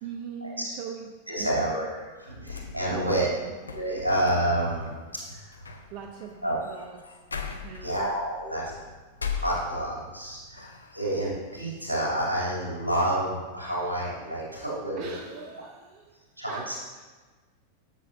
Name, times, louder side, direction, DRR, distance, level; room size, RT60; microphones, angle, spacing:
voice 1, 0.0-1.1 1.3-1.8 2.9-3.5 5.9-7.1 7.6-8.1 14.9-17.0, right 6 dB, 45° right, 4 dB, 0.7 m, -41 dB
voice 2, 1.3-1.9 2.2-3.3 3.7-4.9 5.3-5.7 6.4-6.6 7.8-8.9 9.3-15.1 16.4-16.7, right 1 dB, 85° right, -5 dB, 3.0 m, -29 dB
sound 1, 2.2-10.2 10.6-11.4, left 6 dB, 75° left, 0.7 m, -40 dB
14.5 x 7.1 x 2.7 m, 1.3 s
figure-of-eight pair, 90°, 0 cm